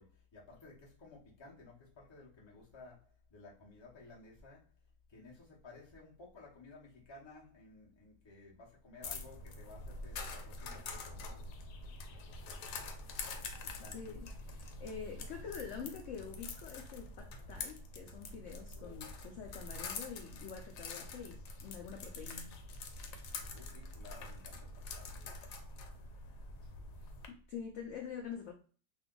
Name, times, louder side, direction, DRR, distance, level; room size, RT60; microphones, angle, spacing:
voice 1, 0.0-4.7 5.1-12.7 13.6-14.2 18.7-19.0 23.5-25.3, left 3 dB, 25° left, 0.7 m, -56 dB
sound 1, 9.0-27.3, left 3 dB, 85° left, 1.2 m, -46 dB
voice 2, 13.9-14.3 14.6-22.6 27.3-28.5, left 6 dB, 65° left, 0.7 m, -46 dB
2.7 x 2.3 x 3.7 m
omnidirectional pair, 1.7 m